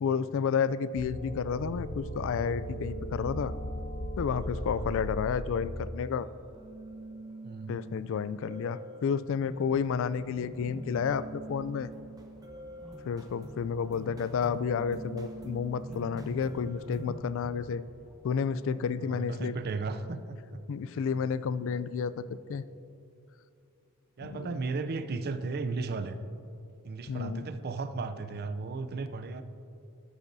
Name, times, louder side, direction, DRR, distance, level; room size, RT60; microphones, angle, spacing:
voice 1, 0.0-3.5 4.2-6.3 7.7-11.9 13.0-17.8 18.2-19.5 20.7-22.6 24.3-24.5 27.1-27.5, left 6 dB, 65° left, 16 dB, 0.3 m, -31 dB
sound 1, 1.0-5.9, equal, 45° left, 0.8 m, -37 dB
sound 2, 2.5-17.2, right 1 dB, 15° right, 0.8 m, -47 dB
voice 2, 4.7-5.1 7.4-7.8 19.0-20.6 24.2-26.2 26.8-29.4, right 4 dB, 45° right, 10 dB, 0.5 m, -35 dB
sound 3, 9.4-18.2, equal, ahead, 1.3 m, -48 dB
13.0 x 11.0 x 2.7 m, 2.6 s
head